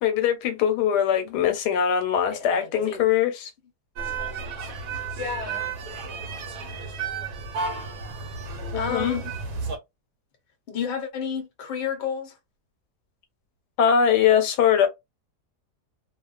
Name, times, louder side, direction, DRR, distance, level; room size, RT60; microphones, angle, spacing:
voice 1, 0.0-3.5 8.7-9.2 13.8-14.9, left 8 dB, 85° left, 1.2 m, -22 dB
voice 2, 2.3-3.0 4.7-5.7 8.7-9.3 10.7-12.3, left 6 dB, 55° left, 0.8 m, -31 dB
sound 1, 4.0-9.8, right 5 dB, 70° right, 1.1 m, -33 dB
2.6 x 2.4 x 2.3 m
omnidirectional pair, 1.8 m